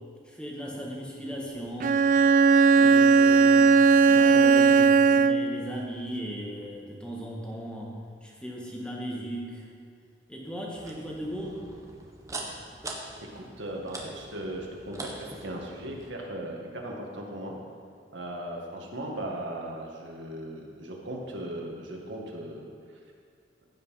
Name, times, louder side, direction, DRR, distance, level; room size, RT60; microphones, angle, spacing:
voice 1, 0.3-2.1 2.7-9.7 10.3-11.6, equal, 5° left, -3 dB, 1.8 m, -37 dB
Bowed string instrument, 1.8-5.6, right 5 dB, 45° right, 0.4 m, -18 dB
sound 1, 10.7-16.1, right 2 dB, 20° right, 1.3 m, -42 dB
voice 2, 13.2-17.5 18.1-22.6, right 1 dB, 85° right, -1 dB, 1.9 m, -37 dB
15.0 x 5.6 x 5.8 m, 2.2 s
head